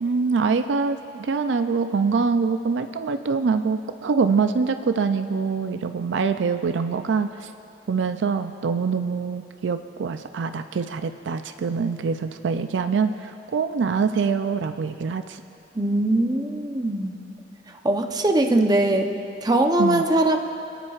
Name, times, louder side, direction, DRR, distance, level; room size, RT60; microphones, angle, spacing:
voice 1, 0.0-7.5 7.9-15.4 19.8-20.0, right 5 dB, 80° right, 9 dB, 0.4 m, -24 dB
voice 2, 15.7-17.2 17.8-19.1 19.4-20.4, right 1 dB, 20° right, 3 dB, 0.8 m, -21 dB
28.5 x 10.0 x 2.4 m, 2.6 s
head